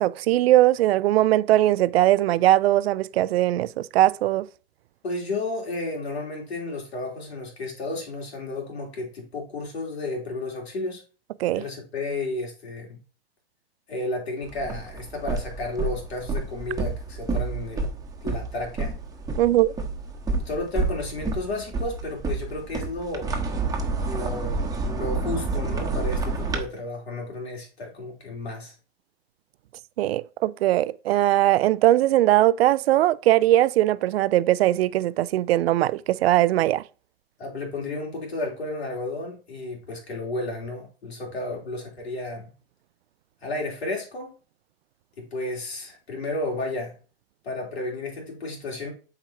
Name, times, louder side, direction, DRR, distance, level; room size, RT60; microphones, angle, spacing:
voice 1, 0.0-4.5 11.4-11.6 19.4-19.7 30.0-36.8, right 14 dB, 75° right, 0.5 m, -20 dB
voice 2, 5.0-11.0 11.5-13.0 13.9-17.9 18.2-18.9 20.4-23.4 24.1-28.7 37.4-42.4 43.4-44.3 45.2-46.9 47.4-48.9, left 2 dB, 85° left, 3.4 m, -32 dB
sound 1, 14.4-26.6, right 3 dB, 10° right, 1.2 m, -29 dB
7.9 x 4.8 x 2.9 m
hypercardioid pair, 110°, 31 cm